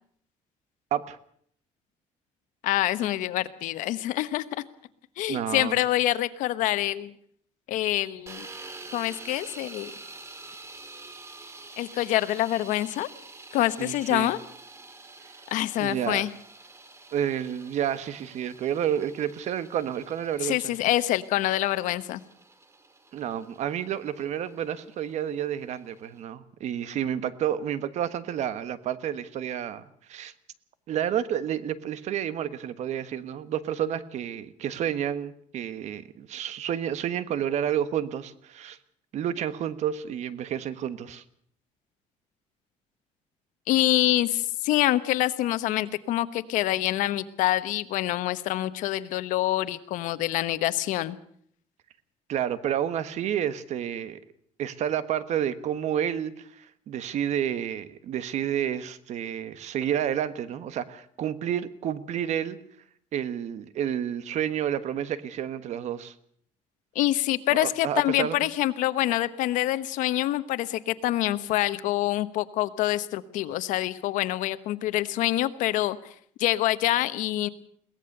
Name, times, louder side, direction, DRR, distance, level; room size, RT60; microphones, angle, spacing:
voice 1, 2.6-4.4 5.2-7.1 7.7-8.5 8.9-9.9 11.8-13.1 13.5-14.4 15.5-16.3 20.4-22.2 43.7-51.2 66.9-76.0 76.4-77.5, left 15 dB, 90° left, 13 dB, 1.1 m, -26 dB
voice 2, 5.3-5.8 13.8-14.3 15.8-16.2 17.1-20.7 23.1-29.8 30.1-30.3 30.9-38.8 39.1-41.2 52.3-54.2 54.6-62.6 63.1-66.1 67.5-68.4, right 10 dB, 65° right, 14 dB, 1.3 m, -30 dB
sound 1, 8.3-26.2, right 3 dB, 20° right, 2.3 m, -47 dB
22.0 x 18.0 x 6.7 m, 0.62 s
cardioid pair, 135°, 13 cm